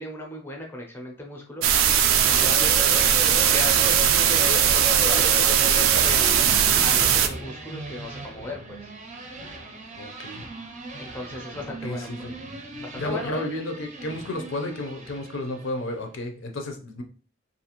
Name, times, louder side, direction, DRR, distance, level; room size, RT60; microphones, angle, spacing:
voice 1, 0.0-1.7 2.3-6.4 6.8-8.9 10.9-12.3 12.8-13.5, left 2 dB, 10° left, 1 dB, 0.5 m, -36 dB
sound 1, 1.6-7.3, right 9 dB, 85° right, 0.3 m, -19 dB
sound 2, 2.3-15.9, right 1 dB, 35° right, 0.5 m, -37 dB
voice 2, 10.0-10.4 11.8-12.3 13.0-17.0, left 1 dB, 70° left, 4 dB, 0.6 m, -32 dB
2.6 x 2.4 x 2.9 m, 0.38 s
head